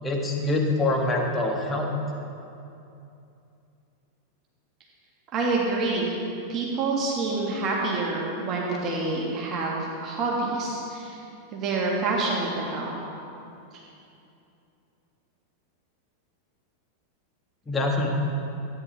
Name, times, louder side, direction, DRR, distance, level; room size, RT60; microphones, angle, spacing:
voice 1, 0.0-1.9 17.7-18.1, left 2 dB, 15° left, 0 dB, 1.5 m, -25 dB
voice 2, 5.3-6.2 6.5-11.2 11.5-12.9, right 3 dB, 30° right, -3 dB, 1.7 m, -27 dB
13.5 x 9.2 x 3.4 m, 2.7 s
figure-of-eight pair, 90°, 0 cm